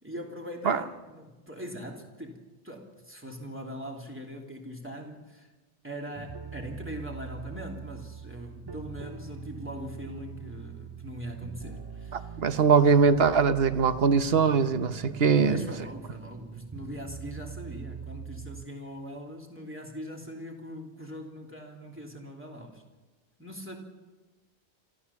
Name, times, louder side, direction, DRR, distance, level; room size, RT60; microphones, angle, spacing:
voice 1, 0.0-5.5 5.8-12.4 15.4-22.8 23.4-23.8, equal, 10° right, 0 dB, 2.9 m, -41 dB
sound 1, 6.1-18.7, right 6 dB, 25° right, 0.7 m, -42 dB
voice 2, 12.1-15.6, right 5 dB, 60° right, 10 dB, 1.2 m, -22 dB
27.0 x 14.0 x 7.1 m, 1.2 s
omnidirectional pair, 1.2 m